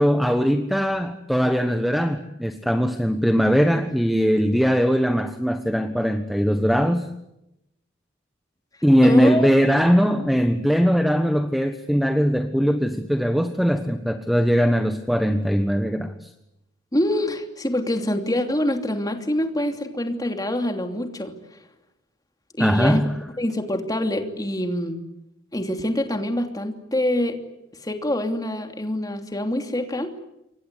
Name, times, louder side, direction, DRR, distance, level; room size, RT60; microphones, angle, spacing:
voice 1, 0.0-7.0 8.8-16.1 22.6-23.2, equal, ahead, 7 dB, 1.2 m, -20 dB
voice 2, 9.0-9.5 16.9-21.6 22.6-23.1 23.4-25.0 25.5-27.4 27.8-30.1, left 1 dB, 20° left, 5 dB, 2.9 m, -25 dB
28.0 x 23.5 x 8.3 m, 0.87 s
head